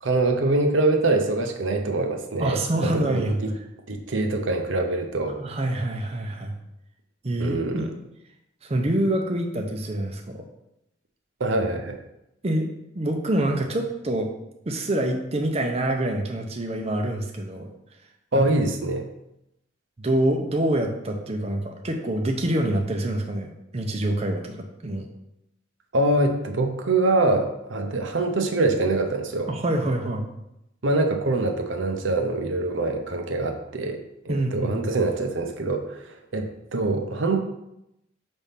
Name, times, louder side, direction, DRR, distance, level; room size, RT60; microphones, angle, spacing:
voice 1, 0.0-3.5 3.9-5.4 7.4-7.9 11.4-12.0 18.3-19.1 25.9-29.5 30.8-37.4, right 2 dB, 70° right, 4 dB, 0.7 m, -24 dB
voice 2, 2.4-3.4 5.4-6.5 7.2-7.9 8.6-10.4 12.4-12.7 12.9-14.3 14.7-17.7 18.3-18.4 20.0-25.0 29.5-30.3 34.3-35.0, right 1 dB, 30° right, 2 dB, 0.6 m, -26 dB
5.1 x 3.5 x 5.7 m, 0.85 s
head